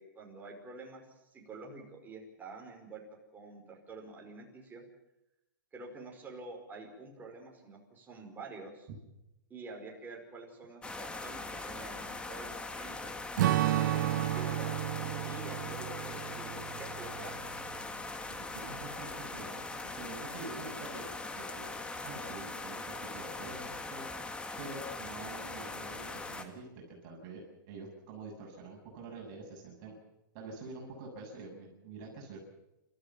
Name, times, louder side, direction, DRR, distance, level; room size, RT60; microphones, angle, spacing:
voice 1, 0.0-3.0 3.3-4.8 5.7-8.9 9.5-13.1 13.8-17.5, right 3 dB, 15° right, 0 dB, 5.3 m, -48 dB
sound 1, 10.8-26.4, left 3 dB, 10° left, 1.7 m, -41 dB
Strum, 13.4-18.0, right 14 dB, 65° right, 0.8 m, -32 dB
voice 2, 18.4-21.1 21.3-24.1 24.6-29.9 30.3-32.4, right 3 dB, 45° right, 0 dB, 7.3 m, -46 dB
29.0 x 14.0 x 7.2 m, 0.91 s
hypercardioid pair, 130°, 11 cm